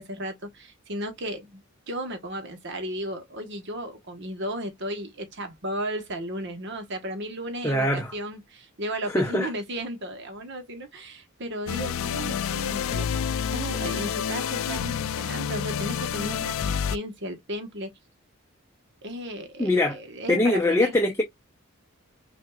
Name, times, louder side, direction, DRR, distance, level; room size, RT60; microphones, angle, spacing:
voice 1, 0.0-13.1 13.5-17.9 19.0-21.0, right 1 dB, 55° right, 1.2 m, -35 dB
voice 2, 7.6-8.1 9.1-9.5 19.6-20.0 20.3-21.2, left 2 dB, 15° left, 0.6 m, -22 dB
sound 1, 11.7-17.0, left 8 dB, 70° left, 0.3 m, -28 dB
5.8 x 2.6 x 2.3 m
head